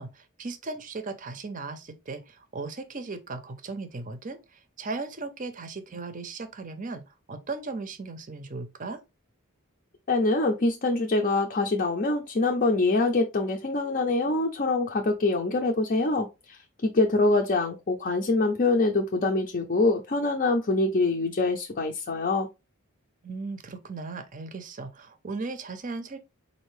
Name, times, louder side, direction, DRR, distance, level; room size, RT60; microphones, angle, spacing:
voice 1, 0.0-9.0 23.2-26.2, right 3 dB, 35° right, 0.6 m, -37 dB
voice 2, 10.1-16.6 16.8-22.5, left 2 dB, 40° left, 0.5 m, -24 dB
4.3 x 2.6 x 3.2 m
head